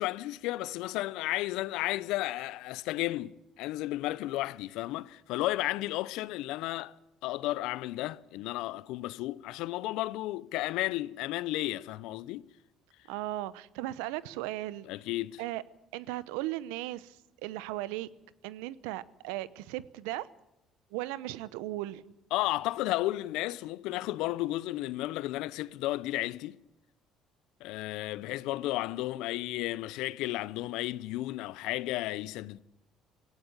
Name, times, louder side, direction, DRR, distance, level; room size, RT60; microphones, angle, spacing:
voice 1, 0.0-6.9 7.2-12.5 14.9-15.4 22.3-26.6 27.6-32.6, left 17 dB, 75° left, 0.7 m, -33 dB
voice 2, 13.1-14.9 15.4-15.6 15.9-18.1 18.4-20.3 20.9-22.0, right 16 dB, 80° right, 0.8 m, -37 dB
18.0 x 17.5 x 8.8 m
hypercardioid pair, 60°, 0 cm